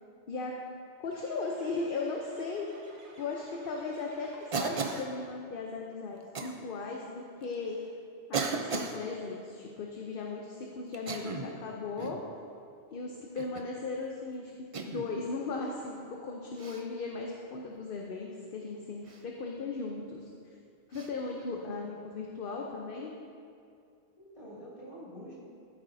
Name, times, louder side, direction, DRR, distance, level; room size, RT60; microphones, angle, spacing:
voice 1, 1.0-2.7 3.2-7.8 8.3-12.2 12.9-14.5 14.8-20.2 20.9-23.1, left 4 dB, 55° left, -1 dB, 0.8 m, -37 dB
sound 1, 1.1-5.3, right 3 dB, 70° right, 1.3 m, -55 dB
Cough, 4.5-5.1 6.3-6.5 7.4-7.5 8.3-9.0 10.9-11.6 12.0-12.3 13.4-13.7 14.7-15.1 16.6-16.8 19.1-19.2 20.9-21.1, right 4 dB, 40° right, 0.5 m, -35 dB
voice 2, 21.5-21.9 24.2-25.4, equal, 30° left, -8 dB, 2.5 m, -47 dB
13.5 x 8.5 x 2.7 m, 2.4 s
omnidirectional pair, 1.2 m